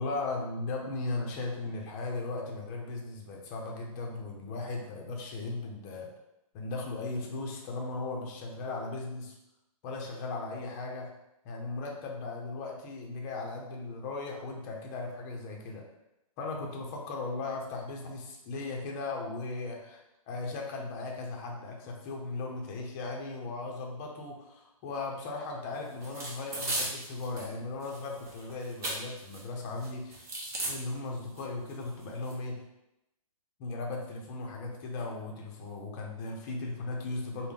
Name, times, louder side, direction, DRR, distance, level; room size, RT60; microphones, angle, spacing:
voice 1, 0.0-6.1 6.5-9.3 9.8-11.1 11.4-15.9 16.4-20.0 20.3-30.2 30.7-32.6 33.6-37.5, left 3 dB, 30° left, 0 dB, 0.6 m, -37 dB
sound 1, 26.0-27.5 27.8-29.4 29.8-30.7 31.4-31.5 31.7-32.3, right 2 dB, 15° right, 0.6 m, -36 dB
3.5 x 2.2 x 3.6 m, 0.88 s
hypercardioid pair, 140°, 19 cm